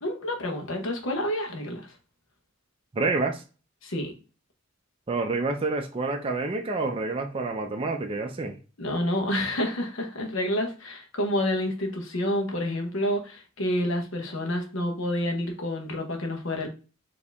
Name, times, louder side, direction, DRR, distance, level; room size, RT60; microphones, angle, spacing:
voice 1, 0.0-1.9 3.8-4.1 8.8-16.7, left 1 dB, 70° left, 1.0 m, -28 dB
voice 2, 2.9-3.4 5.1-8.6, right 3 dB, 25° right, 0.4 m, -28 dB
4.4 x 2.8 x 3.4 m
head